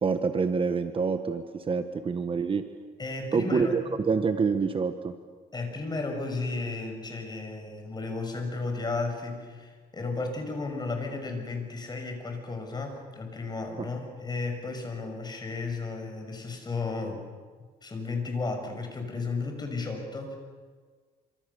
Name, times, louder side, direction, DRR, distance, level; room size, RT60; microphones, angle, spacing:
voice 1, 0.0-2.7 3.3-5.1 13.8-13.9, right 5 dB, 30° right, 8 dB, 1.4 m, -27 dB
voice 2, 3.0-3.7 5.5-17.2 17.8-20.4, left 3 dB, 25° left, 4 dB, 6.5 m, -33 dB
27.0 x 26.0 x 7.0 m, 1.5 s
cardioid pair, 110°, 17 cm